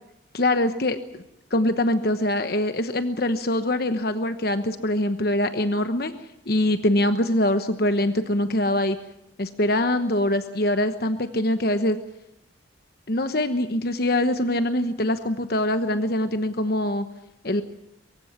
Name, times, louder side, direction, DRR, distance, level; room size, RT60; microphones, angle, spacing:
voice 1, 0.3-1.2 1.5-6.1 6.5-9.0 9.4-12.0 13.1-17.1 17.4-17.6, left 1 dB, 50° left, 9 dB, 1.1 m, -23 dB
23.5 x 15.5 x 9.6 m, 0.84 s
head